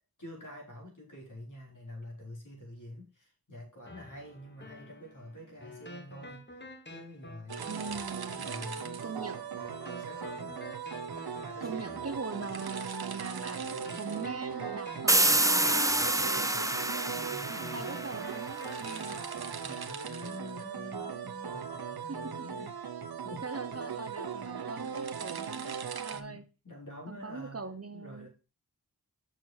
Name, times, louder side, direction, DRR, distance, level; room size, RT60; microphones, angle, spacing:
voice 1, 0.2-6.4 6.9-8.0 8.3-9.3 10.0-10.6 11.4-12.1 17.1-18.0 19.6-22.7 23.2-23.5 26.1-27.6 27.9-28.3, left 1 dB, 55° left, -1 dB, 3.9 m, -47 dB
sound 1, 3.9-19.8, left 1 dB, 30° left, 1.2 m, -50 dB
sound 2, 7.5-26.2, right 7 dB, 80° right, 0.8 m, -39 dB
voice 2, 7.7-8.5 9.0-9.4 11.6-13.6 14.0-16.5 16.9-17.2 17.5-19.2 22.1-22.3 23.4-26.4 27.1-28.3, right 4 dB, 40° right, 8 dB, 0.8 m, -41 dB
sound 3, 15.1-18.7, right 1 dB, 10° right, 0.6 m, -27 dB
6.6 x 6.2 x 4.4 m, 0.32 s
wide cardioid pair, 60°, 37 cm